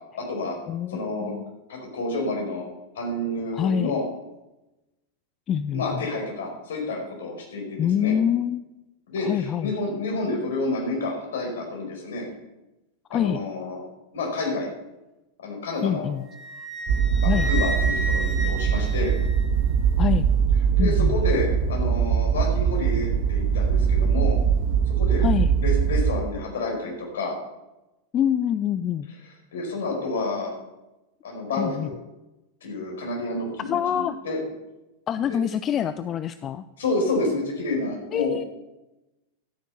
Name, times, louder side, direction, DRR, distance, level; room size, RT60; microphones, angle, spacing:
voice 1, 0.1-0.5 0.9-1.3 1.7-2.6 2.9-4.0 5.7-8.1 9.1-12.2 13.1-13.8 14.1-14.7 15.4-16.1 17.2-19.1 20.8-24.4 25.0-25.2 25.6-27.4 29.5-30.5 31.2-31.9 32.6-34.4 35.3-35.4 36.8-38.5, left 2 dB, 60° left, 0 dB, 4.8 m, -29 dB
voice 2, 0.7-1.5 3.5-3.9 5.5-6.0 7.8-8.8 9.2-9.7 13.1-13.4 15.8-16.3 17.2-17.5 20.0-20.3 20.8-21.2 25.2-25.5 28.1-29.1 31.6-31.9 33.7-34.2 35.1-36.6 38.1-38.4, left 9 dB, 30° left, 13 dB, 0.4 m, -25 dB
Wind instrument woodwind instrument, 16.3-19.8, equal, ahead, 2.8 m, -32 dB
sound 1, 16.9-26.1, right 7 dB, 50° right, 1.2 m, -22 dB
12.5 x 9.0 x 5.8 m, 0.98 s
figure-of-eight pair, 90°, 0 cm